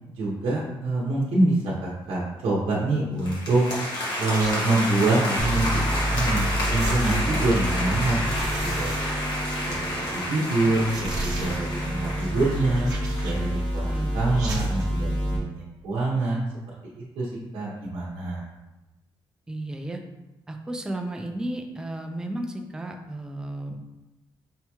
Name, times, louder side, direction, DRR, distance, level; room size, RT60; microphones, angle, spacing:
voice 1, 0.1-3.6 4.2-8.2 8.6-9.1 9.6-12.9 13.2-16.4 16.9-18.4, right 2 dB, 80° right, -6 dB, 0.8 m, -26 dB
sound 1, 3.2-13.5, left 1 dB, 55° left, 1.2 m, -30 dB
sound 2, 4.3-4.9 6.3-6.4 6.8-7.8 8.3-9.8 10.1-10.2 10.8-11.9 12.7-13.6 14.3-15.0, right 2 dB, 45° right, 0.8 m, -36 dB
sound 3, 5.4-15.4, equal, 15° left, 0.8 m, -29 dB
voice 2, 13.9-14.2 19.5-20.0 20.5-23.8, right 1 dB, 10° right, 3 dB, 0.3 m, -33 dB
5.5 x 2.3 x 2.9 m, 1.0 s
cardioid pair, 165°, 9 cm